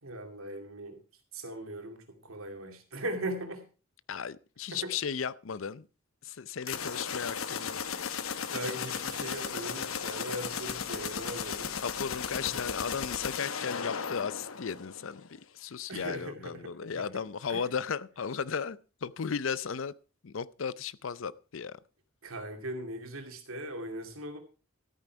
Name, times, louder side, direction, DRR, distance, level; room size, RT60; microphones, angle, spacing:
voice 1, 0.0-1.0 1.3-3.7 4.7-4.9 6.7-6.8 8.5-11.8 12.4-12.6 15.9-17.0 17.5-17.6 22.2-24.4, right 1 dB, 85° right, 2.5 m, -39 dB
voice 2, 4.1-5.9 6.2-7.8 11.8-19.9 20.2-21.8, left 6 dB, 70° left, 0.6 m, -35 dB
sound 1, 6.6-15.3, left 7 dB, 90° left, 1.0 m, -36 dB
13.5 x 9.2 x 4.6 m
head